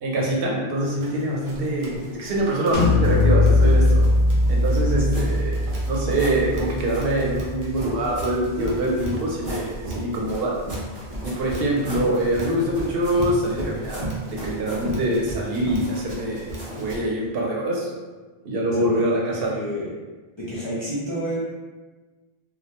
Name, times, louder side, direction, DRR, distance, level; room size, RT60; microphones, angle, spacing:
voice 1, 0.0-4.0 4.5-10.6 11.2-17.9 18.4-19.6, right 1 dB, 70° right, -3 dB, 0.8 m, -24 dB
Run, 0.8-17.0, right 1 dB, 50° right, 0.3 m, -35 dB
sound 1, 2.7-8.4, left 2 dB, 80° left, 0.8 m, -21 dB
sound 2, 4.6-5.3 5.6-6.4 6.8-7.1 7.7-8.4 9.0-9.7 10.2-13.6 13.9-14.9 15.8-16.1 16.5-16.8, right 1 dB, 35° right, 1.0 m, -41 dB
voice 2, 18.7-19.0 19.3-19.9 20.4-21.4, equal, 35° left, -10 dB, 0.5 m, -30 dB
2.2 x 2.1 x 2.8 m, 1.3 s
omnidirectional pair, 1.0 m